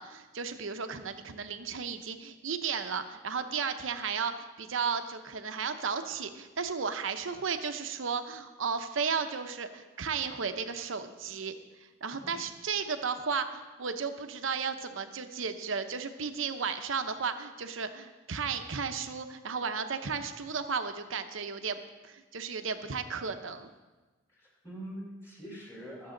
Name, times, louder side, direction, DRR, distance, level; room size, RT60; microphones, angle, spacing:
voice 1, 0.0-11.5 12.0-23.7, right 5 dB, 75° right, 8 dB, 0.8 m, -34 dB
voice 2, 24.3-26.1, equal, 15° left, -4 dB, 4.2 m, -44 dB
21.0 x 7.5 x 3.9 m, 1.2 s
head